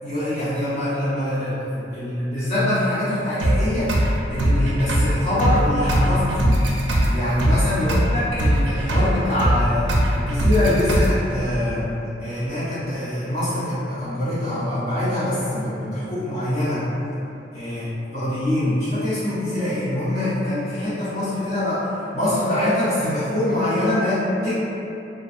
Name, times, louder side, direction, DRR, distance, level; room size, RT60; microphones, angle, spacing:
voice 1, 0.0-3.9 4.3-6.6 7.1-11.9 12.2-16.9 17.5-17.9 18.1-21.9 22.1-24.5, left 1 dB, 55° left, -14 dB, 1.1 m, -24 dB
sound 1, 3.4-11.4, equal, 80° right, 0.4 m, -21 dB
2.3 x 2.3 x 2.5 m, 2.9 s
head